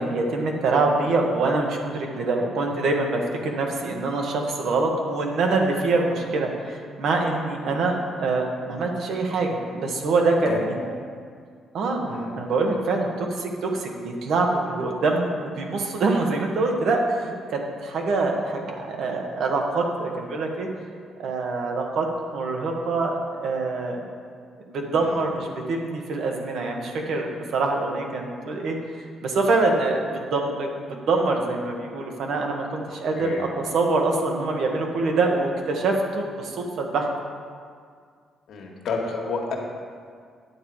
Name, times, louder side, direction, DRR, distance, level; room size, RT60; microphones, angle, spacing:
voice 1, 0.0-10.8 11.7-20.7 21.2-22.1 22.3-24.0 24.7-28.8 29.2-37.1, right 3 dB, 70° right, 2 dB, 1.5 m, -25 dB
voice 2, 10.4-10.9 12.0-12.3 25.0-25.2 33.2-33.4 38.5-39.6, left 4 dB, 70° left, 0 dB, 1.7 m, -30 dB
9.7 x 7.4 x 4.8 m, 2.1 s
cardioid pair, 90°, 0 cm